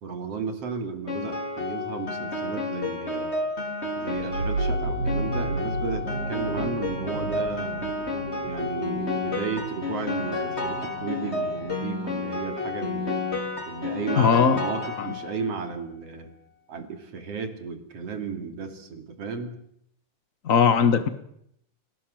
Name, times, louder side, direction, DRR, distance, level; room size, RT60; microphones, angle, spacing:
voice 1, 0.0-3.3 4.0-7.8 8.4-13.2 13.7-16.3 16.7-19.6, right 5 dB, 45° right, 7 dB, 3.5 m, -34 dB
Piano, 1.1-15.5, left 3 dB, 20° left, 4.2 m, -31 dB
sound 1, 4.1-13.4, right 3 dB, 70° right, 4.5 m, -34 dB
voice 2, 14.2-14.6 15.0-15.1 20.4-21.1, left 6 dB, 65° left, 11 dB, 0.8 m, -19 dB
30.0 x 18.0 x 7.9 m, 0.75 s
omnidirectional pair, 3.9 m